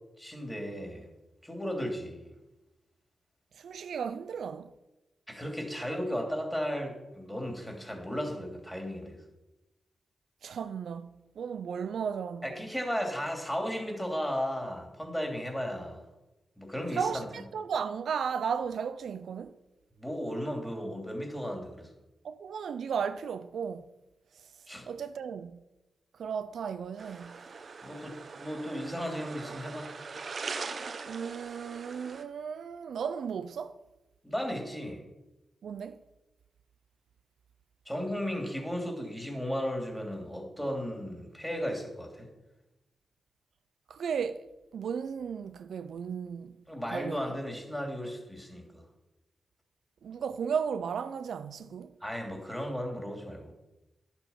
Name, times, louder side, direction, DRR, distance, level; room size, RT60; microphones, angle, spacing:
voice 1, 0.2-1.0 1.4-2.2 5.3-9.2 12.4-16.0 16.6-17.3 20.0-21.9 24.7-24.9 27.8-29.9 34.2-35.0 37.8-42.3 46.7-48.8 52.0-53.5, equal, 5° left, 3.0 m, -35 dB
voice 2, 3.5-4.7 10.4-12.6 16.9-19.6 22.2-23.9 24.9-25.6 26.2-27.4 31.1-33.8 35.6-36.0 43.9-44.5 44.7-46.6 46.9-47.2 50.0-51.9, right 7 dB, 80° right, 0.4 m, -35 dB
sound 1, 27.0-32.2, right 4 dB, 60° right, 0.8 m, -41 dB
11.0 x 7.1 x 5.7 m
cardioid pair, 65°, 0 cm